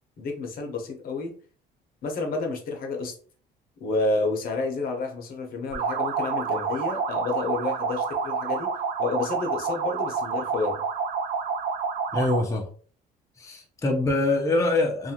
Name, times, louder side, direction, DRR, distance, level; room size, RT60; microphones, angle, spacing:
voice 1, 0.2-1.4 2.0-3.2 3.8-8.7 9.0-10.8, left 3 dB, 60° left, 2 dB, 0.8 m, -30 dB
sound 1, 5.7-12.5, right 5 dB, 60° right, 0.6 m, -28 dB
voice 2, 12.1-12.6 13.4-15.1, left 2 dB, 20° left, 0 dB, 0.6 m, -24 dB
2.5 x 2.4 x 2.8 m, 0.42 s
cardioid pair, 110°, 17 cm